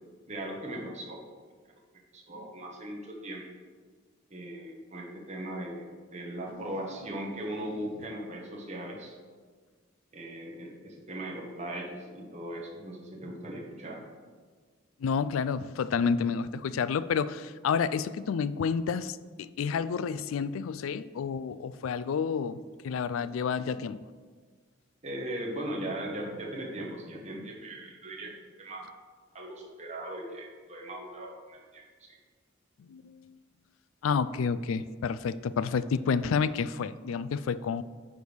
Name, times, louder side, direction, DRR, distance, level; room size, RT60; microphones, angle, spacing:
voice 1, 0.3-1.2 2.1-3.4 4.3-9.2 10.1-14.0 25.0-28.9 29.3-32.2 34.7-34.8, right 1 dB, 35° right, -2 dB, 1.3 m, -39 dB
sound 1, 6.4-8.4, equal, 85° right, 1.4 m, -50 dB
voice 2, 15.0-24.0 32.8-33.3 34.0-37.8, left 6 dB, 90° left, 16 dB, 0.4 m, -30 dB
9.3 x 3.5 x 6.4 m, 1.5 s
head